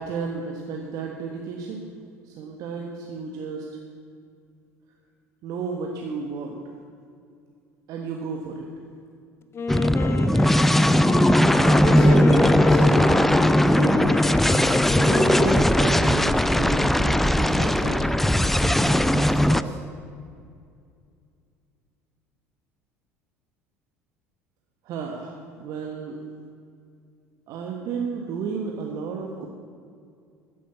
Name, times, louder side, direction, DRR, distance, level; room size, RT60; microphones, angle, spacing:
voice 1, 0.0-1.8 2.2-3.7 5.4-6.6 7.9-8.7 24.8-26.2 27.5-29.5, right 5 dB, 50° right, 1 dB, 1.4 m, -32 dB
Wind instrument woodwind instrument, 9.5-16.2, left 4 dB, 30° left, 0.9 m, -30 dB
sound 1, 9.7-19.6, left 1 dB, 5° left, 0.4 m, -19 dB
voice 2, 11.2-19.8, right 2 dB, 70° right, -3 dB, 3.5 m, -32 dB
15.0 x 8.5 x 7.1 m, 2.3 s
figure-of-eight pair, 65°, 8 cm